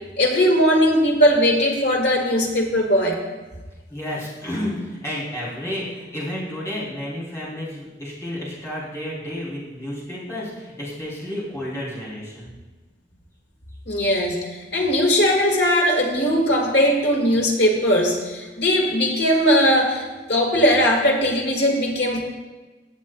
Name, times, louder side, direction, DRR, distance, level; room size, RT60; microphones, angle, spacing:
voice 1, 0.2-3.2 13.9-22.2, equal, 80° left, 0 dB, 1.7 m, -19 dB
voice 2, 3.9-12.5, left 1 dB, 15° left, -8 dB, 3.0 m, -31 dB
15.5 x 7.1 x 2.3 m, 1.2 s
head